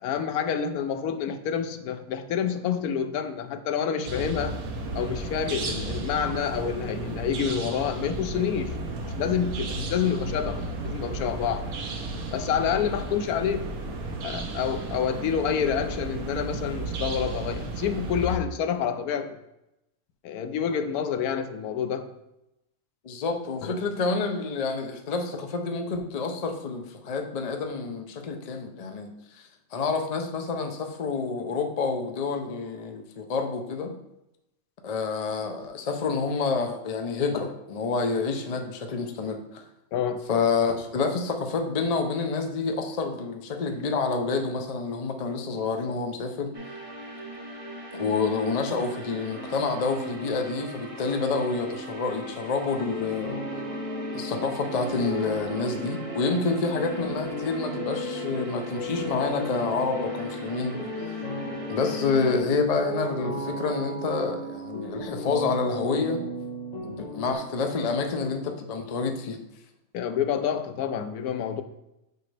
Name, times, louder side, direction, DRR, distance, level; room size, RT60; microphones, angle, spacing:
voice 1, 0.0-4.6 4.9-11.6 12.3-13.7 14.2-19.4 20.2-22.1 23.6-23.7 39.9-40.2 69.9-71.6, left 8 dB, 80° left, 9 dB, 1.1 m, -28 dB
sound 1, 4.1-18.4, right 2 dB, 75° right, 1.3 m, -33 dB
voice 2, 23.0-33.9 34.8-39.6 40.3-46.5 47.9-53.4 54.1-60.8 61.1-61.2 61.7-66.2 66.8-69.4, left 4 dB, 55° left, 4 dB, 0.4 m, -28 dB
sound 2, 46.5-62.4, right 2 dB, 30° right, 0.7 m, -39 dB
sound 3, 52.8-67.4, equal, 30° left, 1.0 m, -35 dB
6.7 x 5.1 x 3.3 m, 0.88 s
omnidirectional pair, 1.6 m